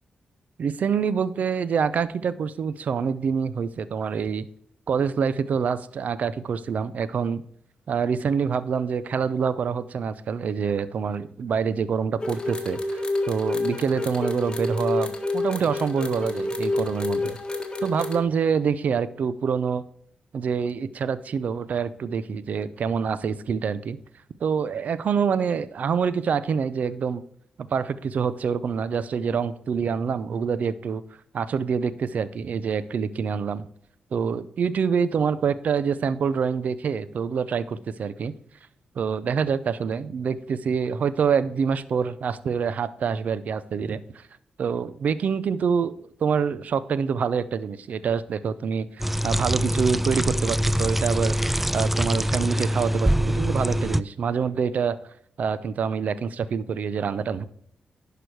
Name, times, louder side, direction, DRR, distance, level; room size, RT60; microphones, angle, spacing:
voice 1, 0.6-4.5 4.9-7.4 7.9-13.0 13.3-17.4 17.8-19.8 20.3-24.0 24.4-27.2 27.6-31.0 31.3-33.7 34.1-38.3 39.0-44.2 44.6-51.3 51.7-55.0 55.4-57.5, right 6 dB, 70° right, 16 dB, 0.6 m, -26 dB
sound 1, 12.2-18.2, left 2 dB, 30° left, 1.6 m, -28 dB
sound 2, 49.0-54.0, equal, 5° right, 0.3 m, -24 dB
11.0 x 5.0 x 4.6 m, 0.65 s
cardioid pair, 55°, 3 cm